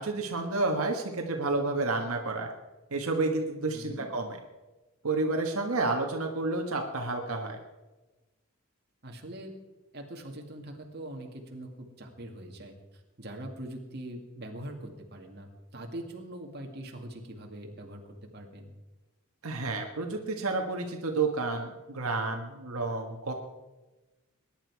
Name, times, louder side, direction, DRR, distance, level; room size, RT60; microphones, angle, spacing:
voice 1, 0.0-2.5 2.9-4.4 5.0-7.6 19.4-23.3, right 3 dB, 85° right, 2 dB, 1.6 m, -30 dB
voice 2, 3.7-4.1 9.0-9.5 9.9-12.8 13.2-18.0 18.3-18.7, right 1 dB, 50° right, 2 dB, 2.1 m, -42 dB
21.0 x 10.5 x 4.7 m, 1.1 s
head